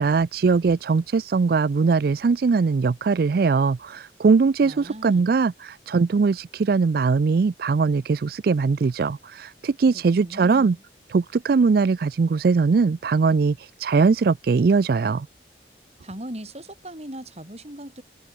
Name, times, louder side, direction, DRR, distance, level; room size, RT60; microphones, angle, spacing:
voice 1, 0.0-10.8 11.1-15.3, right 4 dB, 55° right, 0.4 m, -21 dB
voice 2, 4.6-5.3 9.9-10.8 16.0-18.0, right 1 dB, 35° right, 5.2 m, -39 dB
head